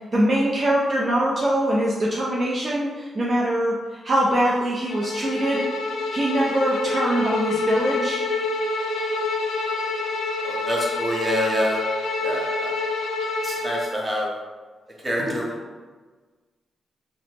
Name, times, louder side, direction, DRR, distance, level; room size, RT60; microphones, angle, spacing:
voice 1, 0.1-5.7 6.1-8.2, right 1 dB, 40° right, -5 dB, 0.4 m, -23 dB
Bowed string instrument, 4.9-14.0, left 3 dB, 90° left, 0.3 m, -27 dB
voice 2, 10.4-11.8 12.2-12.7 13.4-14.3 15.0-15.5, equal, 15° right, -3 dB, 0.8 m, -26 dB
3.2 x 2.0 x 2.8 m, 1.4 s
cardioid pair, 75°, 0 cm